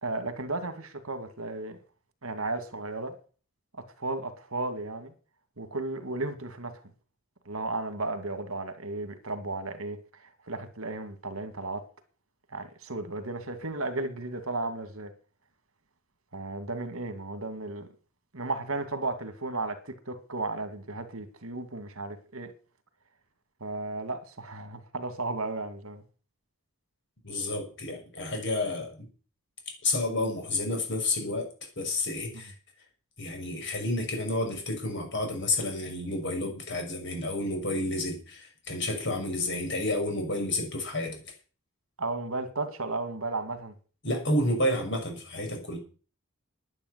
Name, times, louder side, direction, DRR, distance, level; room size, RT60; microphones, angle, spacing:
voice 1, 0.0-1.8 2.2-3.1 3.7-5.1 5.6-6.7 7.5-10.0 10.5-11.8 12.5-15.1 16.3-17.9 18.3-22.5 23.6-26.0 42.0-43.7, right 2 dB, 70° right, 2.3 m, -34 dB
voice 2, 27.2-29.1 29.8-31.5 31.8-32.5 33.2-41.2 44.0-45.8, left 1 dB, 55° left, 6.1 m, -30 dB
10.5 x 10.0 x 8.1 m
head